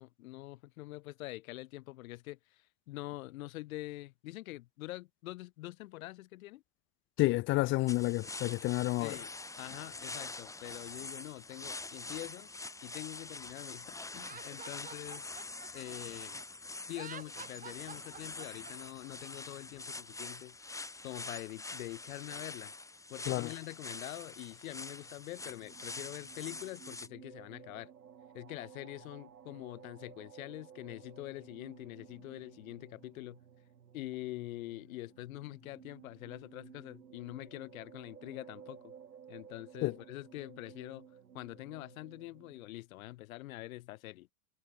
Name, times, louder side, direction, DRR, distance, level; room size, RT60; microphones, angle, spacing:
voice 1, 0.0-6.6 9.0-12.5 12.8-15.2 15.7-16.4 16.9-20.6 21.0-22.7 23.1-27.9 28.3-33.4 33.9-38.9 39.3-41.1 41.3-44.3, left 18 dB, 55° left, 2.5 m, -45 dB
voice 2, 7.2-9.2 23.3-23.5 39.8-39.9, left 20 dB, 25° left, 0.6 m, -30 dB
sound 1, 7.9-27.1, left 3 dB, 5° left, 1.3 m, -45 dB
Laughter, 14.2-16.4 16.9-18.7, right 7 dB, 15° right, 1.8 m, -49 dB
sound 2, 25.3-42.7, right 8 dB, 75° right, 5.8 m, -56 dB
figure-of-eight pair, 95°, 48 cm